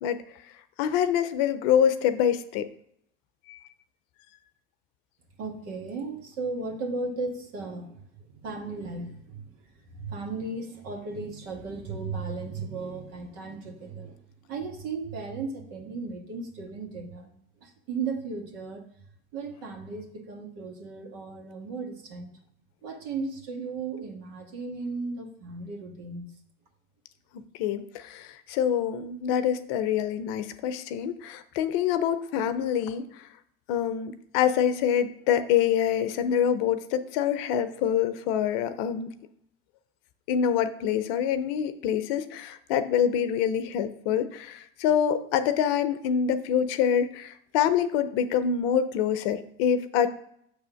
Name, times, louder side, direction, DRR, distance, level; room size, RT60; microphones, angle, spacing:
voice 1, 0.8-2.7 3.5-3.6 27.6-33.3 33.7-39.1 40.3-50.1, left 9 dB, 70° left, 11 dB, 0.7 m, -26 dB
voice 2, 5.4-14.2 14.5-17.3 17.6-18.8 19.3-22.4 22.8-26.4, right 4 dB, 65° right, 2 dB, 1.7 m, -36 dB
6.7 x 3.5 x 5.7 m, 0.71 s
hypercardioid pair, 70°, 30 cm